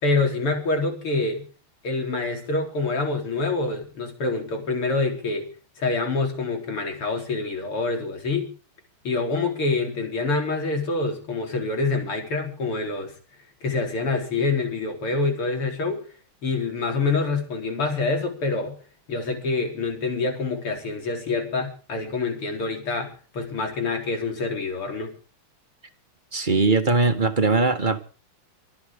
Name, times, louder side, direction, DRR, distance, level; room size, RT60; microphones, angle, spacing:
voice 1, 0.0-1.4 1.8-5.5 5.8-8.5 9.0-13.1 13.6-16.0 16.4-18.8 19.1-25.1, left 3 dB, 90° left, 4.9 m, -26 dB
voice 2, 26.3-28.0, right 3 dB, 25° right, 1.5 m, -20 dB
25.0 x 13.0 x 3.8 m
omnidirectional pair, 2.4 m